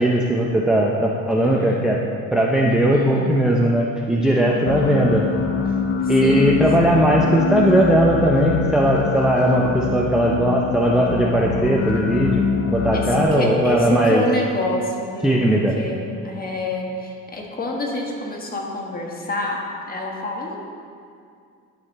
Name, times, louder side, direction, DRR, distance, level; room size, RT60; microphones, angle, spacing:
voice 1, 0.0-2.0 2.3-5.3 6.1-12.4 12.7-14.2 15.2-15.8, right 1 dB, ahead, -2 dB, 0.5 m, -18 dB
voice 2, 1.4-1.8 2.6-3.3 4.2-5.1 6.0-6.6 12.9-15.3 15.8-20.6, left 2 dB, 30° left, 0 dB, 1.3 m, -28 dB
sound 1, 4.7-13.3, left 5 dB, 70° left, 0.7 m, -24 dB
10.5 x 4.2 x 4.0 m, 2.3 s
cardioid pair, 105°, 31 cm